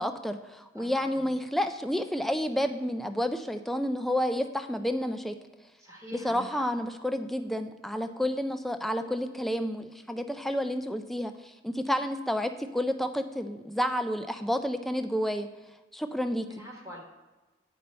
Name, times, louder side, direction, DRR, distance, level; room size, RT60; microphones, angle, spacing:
voice 1, 0.0-5.3 6.2-15.5 15.9-16.5, equal, ahead, 7 dB, 0.3 m, -30 dB
voice 2, 0.7-1.3 5.8-6.6 16.5-17.0, left 1 dB, 15° right, -1 dB, 1.1 m, -44 dB
8.8 x 5.4 x 4.2 m, 1.2 s
head